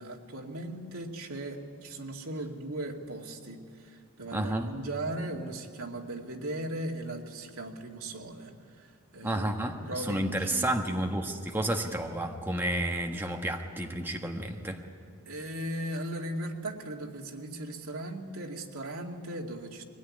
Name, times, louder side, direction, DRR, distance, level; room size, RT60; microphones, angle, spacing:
voice 1, 0.0-9.5 9.9-10.7 15.3-19.8, right 1 dB, 80° right, 1 dB, 2.3 m, -38 dB
voice 2, 4.3-4.7 9.2-14.8, right 1 dB, 10° right, 2 dB, 1.3 m, -31 dB
22.0 x 17.0 x 9.8 m, 2.2 s
head